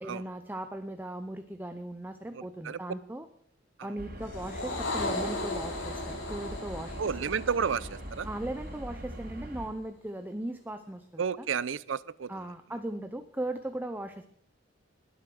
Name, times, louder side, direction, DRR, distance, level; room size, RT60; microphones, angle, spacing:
voice 1, 0.0-3.3 3.8-7.0 8.2-11.5 12.3-14.2, right 1 dB, 10° right, 8 dB, 0.6 m, -38 dB
voice 2, 2.3-2.8 3.8-4.0 7.0-8.3 11.2-12.5, right 6 dB, 80° right, 20 dB, 0.5 m, -32 dB
sound 1, 4.0-9.7, right 1 dB, 55° right, 3.0 m, -42 dB
sound 2, 4.2-8.8, left 2 dB, 85° left, 3.6 m, -36 dB
20.0 x 8.1 x 6.1 m, 0.71 s
head